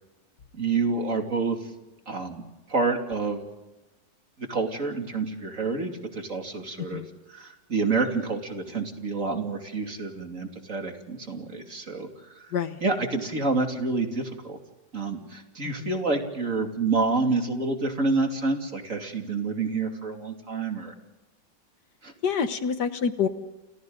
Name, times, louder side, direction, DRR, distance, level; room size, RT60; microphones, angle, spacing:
voice 1, 0.5-1.6 2.1-2.4 2.7-3.4 4.5-7.0 7.3-12.1 12.4-12.5 12.8-14.6 14.9-20.9 22.0-22.1, right 3 dB, 45° right, 3 dB, 3.1 m, -28 dB
voice 2, 22.2-23.3, left 6 dB, 70° left, 10 dB, 1.9 m, -27 dB
29.5 x 29.0 x 4.0 m, 1.1 s
omnidirectional pair, 1.9 m